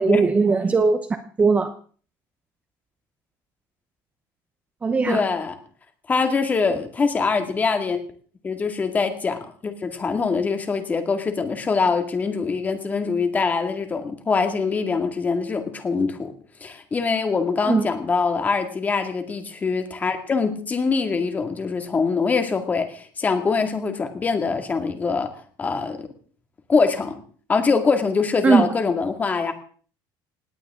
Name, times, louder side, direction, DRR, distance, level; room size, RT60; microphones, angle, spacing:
voice 1, 0.0-1.7 4.8-5.3 17.7-17.9 28.4-28.7, right 4 dB, 15° right, 10 dB, 0.9 m, -19 dB
voice 2, 5.1-5.5 6.1-8.0 8.4-16.3 16.6-25.3 25.6-26.1 26.7-27.2 27.5-29.5, left 4 dB, 20° left, 7 dB, 2.1 m, -23 dB
19.0 x 18.0 x 3.7 m, 0.43 s
cardioid pair, 165°, 9 cm